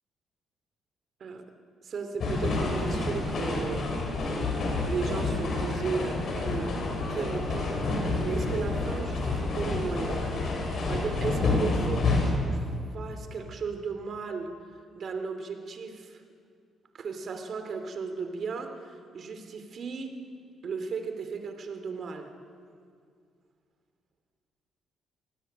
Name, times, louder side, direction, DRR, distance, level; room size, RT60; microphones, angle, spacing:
voice 1, 1.8-4.0 4.6-6.8 7.1-10.2 10.7-12.6 12.9-14.6 14.9-16.2 16.9-20.2 20.6-22.3, right 5 dB, 55° right, 7 dB, 3.1 m, -35 dB
sound 1, 2.2-12.3, left 3 dB, 60° left, 7.1 m, -29 dB
25.5 x 19.0 x 9.0 m, 2.2 s
cardioid pair, 90°, 0 cm